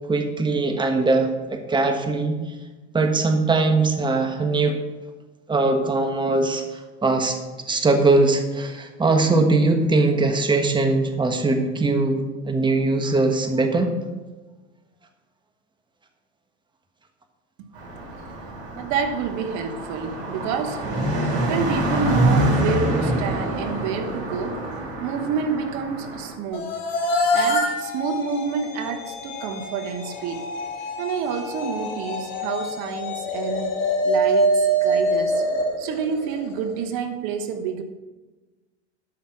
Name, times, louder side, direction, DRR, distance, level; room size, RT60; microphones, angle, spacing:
voice 1, 0.1-2.4 2.9-4.8 5.5-6.6 7.0-7.4 7.7-13.9, right 3 dB, 15° right, 6 dB, 1.3 m, -21 dB
Car passing by, 17.7-26.3, right 1 dB, 80° right, 4.0 m, -26 dB
voice 2, 18.8-20.9 21.4-24.6 25.0-26.7 27.3-30.4 31.0-35.4 35.8-37.8, right 6 dB, 60° right, 7 dB, 1.2 m, -28 dB
sound 1, 26.5-36.7, equal, 60° left, 3.2 m, -25 dB
13.0 x 5.8 x 5.8 m, 1.2 s
supercardioid pair, 100°, 33 cm